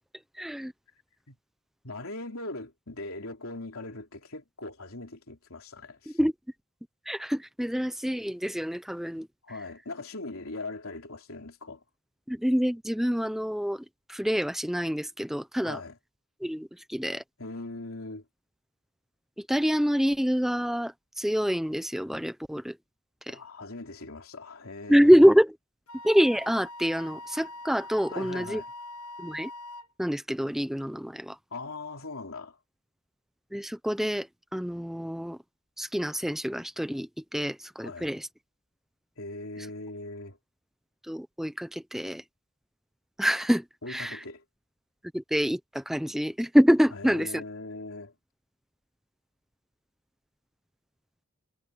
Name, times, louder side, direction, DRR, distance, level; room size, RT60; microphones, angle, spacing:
voice 1, 0.4-0.7 6.1-6.3 7.1-9.3 12.3-15.8 16.4-17.2 19.4-22.8 23.3-23.4 24.9-25.6 26.0-28.6 29.2-29.5 30.0-31.4 33.5-35.4 35.8-38.3 39.6-39.7 41.0-42.2 43.2-44.2 45.1-47.4, equal, ahead, 0.7 m, -26 dB
voice 2, 1.8-6.2 9.4-11.8 15.6-16.0 17.4-18.2 23.3-25.3 28.1-28.7 31.5-32.6 37.8-38.1 39.2-40.4 43.8-44.4 46.9-48.1, left 2 dB, 70° left, 3.6 m, -40 dB
Wind instrument woodwind instrument, 25.9-29.9, left 1 dB, 90° left, 1.5 m, -43 dB
head